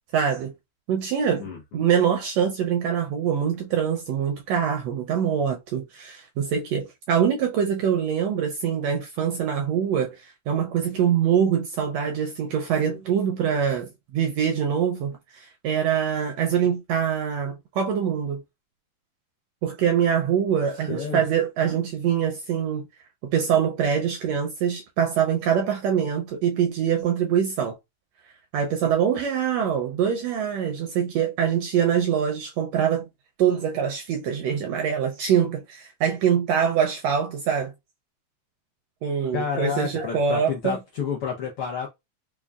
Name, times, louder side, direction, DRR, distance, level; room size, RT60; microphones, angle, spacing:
voice 1, 0.1-0.5 0.9-18.4 19.6-22.9 23.2-27.8 28.5-33.1 33.4-37.7 39.0-40.8, right 8 dB, 80° right, 1.5 m, -24 dB
voice 2, 1.4-1.9 20.9-21.2 39.3-41.9, left 6 dB, 70° left, 1.4 m, -30 dB
5.1 x 2.2 x 2.3 m
omnidirectional pair, 3.3 m